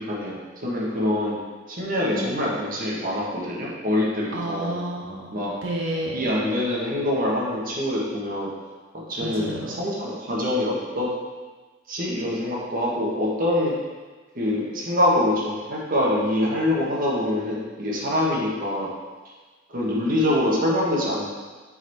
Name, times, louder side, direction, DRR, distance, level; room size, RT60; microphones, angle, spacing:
voice 1, 0.0-1.4 1.7-4.7 5.3-5.5 6.1-8.5 8.9-11.1 11.9-13.7 14.3-18.9 19.7-21.3, left 1 dB, 50° right, -4 dB, 1.4 m, -25 dB
voice 2, 2.1-2.5 4.3-6.2 9.2-9.7, right 1 dB, 85° right, -2 dB, 0.8 m, -31 dB
5.6 x 4.1 x 4.6 m, 1.3 s
head